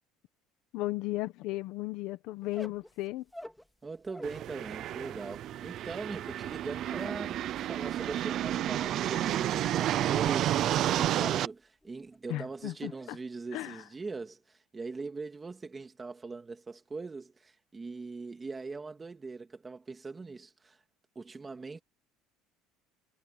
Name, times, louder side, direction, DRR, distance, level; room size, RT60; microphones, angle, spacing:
voice 1, 0.7-3.2 12.3-12.9 13.5-13.8, left 18 dB, 60° left, 1.1 m, -35 dB
sound 1, 2.4-4.4 4.7-11.5 11.8-12.3 12.6-13.1, left 1 dB, 5° left, 3.0 m, -49 dB
voice 2, 3.8-20.8 21.1-21.8, right 4 dB, 15° right, 2.5 m, -41 dB
sound 2, 4.2-11.5, right 12 dB, 45° right, 0.7 m, -31 dB
cardioid pair, 155°, 0 cm